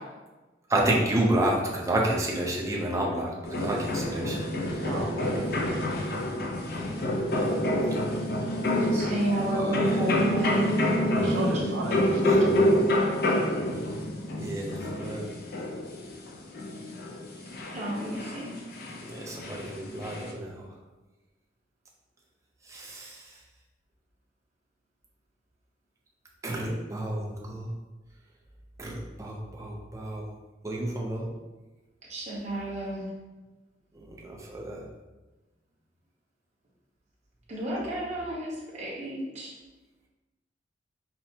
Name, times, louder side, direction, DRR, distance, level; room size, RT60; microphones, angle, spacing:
voice 1, 0.7-4.7 9.5-9.6 12.3-12.6 14.4-15.3 19.1-20.7 22.7-23.2 26.4-27.7 28.8-30.2 30.6-31.3 34.0-34.8, right 1 dB, 15° right, -2 dB, 0.5 m, -30 dB
sound 1, 3.4-20.3, left 1 dB, 55° left, 0.5 m, -28 dB
sound 2, 4.7-5.6 5.9-6.4 6.7-7.6 8.7-9.6 9.9-11.5, right 1 dB, 10° left, 0.8 m, -45 dB
voice 2, 4.8-5.6 11.0-12.7, right 1 dB, 80° right, -2 dB, 0.8 m, -34 dB
voice 3, 8.6-10.7 11.5-11.8 17.7-18.6 32.1-33.1 37.5-39.5, right 1 dB, 35° right, -6 dB, 1.1 m, -31 dB
5.7 x 2.0 x 2.8 m, 1.2 s
head